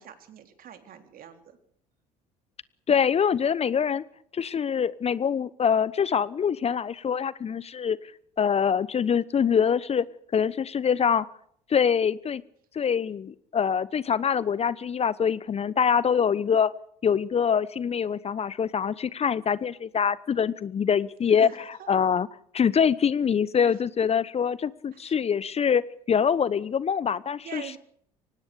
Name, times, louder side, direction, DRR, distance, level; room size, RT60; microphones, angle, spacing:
voice 1, 0.0-1.6 21.3-21.5 21.8-21.9 24.9-25.1 27.4-27.8, right 9 dB, 50° right, 7 dB, 3.7 m, -43 dB
voice 2, 2.9-4.0 4.3-8.0 8.4-10.0 10.3-11.2 11.7-12.4 12.7-16.7 17.0-21.5 21.9-22.3 22.5-27.8, left 7 dB, 35° left, 19 dB, 1.0 m, -24 dB
24.5 x 19.0 x 6.8 m, 0.66 s
figure-of-eight pair, 60°, 19 cm